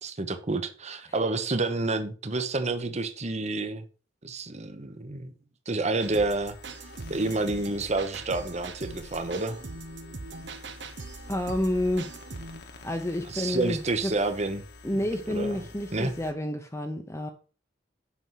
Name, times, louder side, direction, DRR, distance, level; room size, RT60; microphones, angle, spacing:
voice 1, 0.0-3.9 4.2-5.3 5.7-6.5 7.1-9.6 13.3-14.6 15.3-15.7 15.9-16.1, right 2 dB, 40° right, 1.0 m, -29 dB
sound 1, 6.0-16.3, left 2 dB, 60° left, 1.5 m, -48 dB
sound 2, 6.0-12.6, right 3 dB, 70° right, 1.0 m, -42 dB
voice 2, 11.3-12.1 12.8-14.1 14.8-17.3, left 1 dB, 15° left, 0.8 m, -29 dB
8.3 x 6.2 x 5.7 m
head